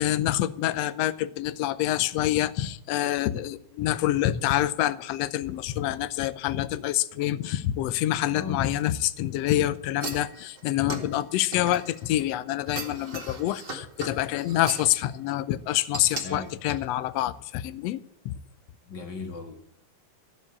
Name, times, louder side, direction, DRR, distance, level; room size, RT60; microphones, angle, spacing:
voice 1, 0.0-18.0 18.2-18.4, left 13 dB, 75° left, 16 dB, 1.6 m, -26 dB
voice 2, 8.3-8.6 16.2-16.6 18.8-19.6, left 3 dB, 40° left, 4 dB, 2.2 m, -37 dB
sound 1, 10.0-12.2 12.7-14.9 15.9-16.3 16.7-16.8, right 3 dB, 20° right, 1.7 m, -37 dB
14.5 x 7.2 x 8.5 m, 0.73 s
omnidirectional pair, 3.5 m